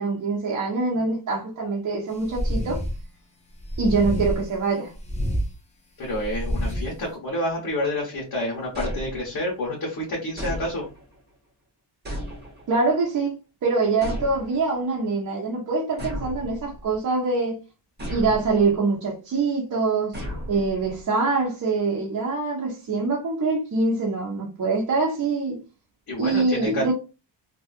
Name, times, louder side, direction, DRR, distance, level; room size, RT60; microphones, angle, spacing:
voice 1, 0.0-2.8 3.8-4.9 12.7-13.4 13.6-17.6 18.1-20.2 20.5-25.6 26.2-26.9, right 3 dB, 45° right, 0.8 m, -24 dB
sound 1, 2.2-3.0 3.6-4.5 4.9-5.5 6.1-6.9, equal, 15° left, 0.6 m, -27 dB
voice 2, 6.0-10.8 26.1-26.9, left 1 dB, 50° left, 1.1 m, -28 dB
sound 2, 8.7-9.6 10.4-11.2 12.1-12.9 14.0-14.8 16.0-17.0 18.0-18.8 20.1-21.1, equal, 20° right, 1.0 m, -34 dB
2.7 x 2.4 x 2.4 m
cardioid pair, 120°, 45 cm